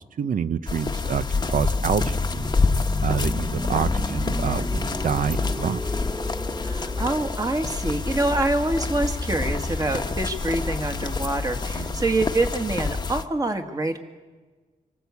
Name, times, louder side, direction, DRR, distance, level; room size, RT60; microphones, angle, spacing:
voice 1, 0.0-2.4 3.0-5.8 11.7-12.0, right 7 dB, 70° right, 13 dB, 0.8 m, -27 dB
sound 1, 0.7-13.2, left 4 dB, 30° left, 1.1 m, -27 dB
sound 2, 1.4-11.0 11.3-11.5, equal, 5° right, 0.8 m, -37 dB
voice 2, 6.6-14.0, right 2 dB, 25° right, 6 dB, 1.9 m, -26 dB
26.0 x 19.0 x 8.4 m, 1.4 s
wide cardioid pair, 130°, 15 cm